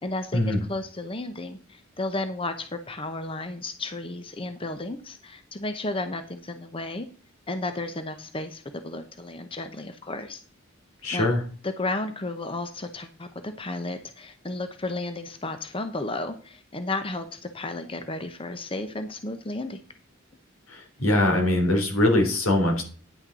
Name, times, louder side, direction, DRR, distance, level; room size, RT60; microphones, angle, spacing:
voice 1, 0.0-7.1 7.5-10.4 11.1-11.3 11.6-19.8, left 2 dB, 25° left, 8 dB, 0.8 m, -33 dB
voice 2, 11.0-11.4 20.7-22.8, left 1 dB, 80° left, 3 dB, 3.5 m, -22 dB
10.0 x 6.4 x 6.1 m, 0.41 s
head